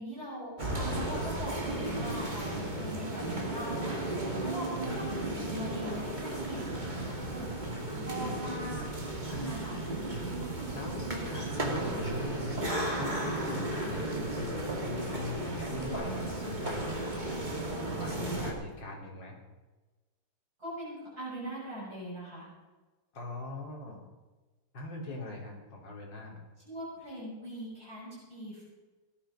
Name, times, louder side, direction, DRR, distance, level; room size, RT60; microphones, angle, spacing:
voice 1, 0.0-7.7 7.9-8.9 9.4-9.8 20.6-22.5 26.6-28.6, equal, 40° right, -7 dB, 7.3 m, -41 dB
sound 1, 0.6-18.5, right 1 dB, 20° right, 2.3 m, -34 dB
voice 2, 9.3-9.9 10.7-12.5 13.0-19.4 23.1-24.0 24.7-26.4, left 2 dB, 55° left, 0 dB, 3.7 m, -41 dB
17.5 x 10.5 x 5.6 m, 1.2 s
omnidirectional pair, 2.4 m